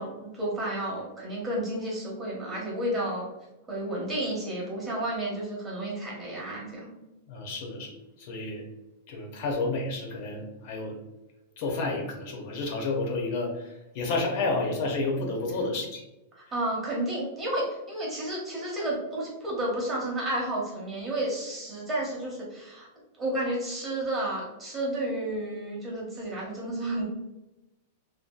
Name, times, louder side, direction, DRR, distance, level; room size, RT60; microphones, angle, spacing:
voice 1, 0.0-3.3 3.7-6.9 16.3-22.9 23.2-27.0, right 1 dB, 15° right, -5 dB, 0.8 m, -31 dB
voice 2, 7.3-8.6 9.1-11.0 11.6-16.0, left 3 dB, 45° left, 1 dB, 0.5 m, -30 dB
2.6 x 2.2 x 2.2 m, 0.99 s
supercardioid pair, 160°, 0 cm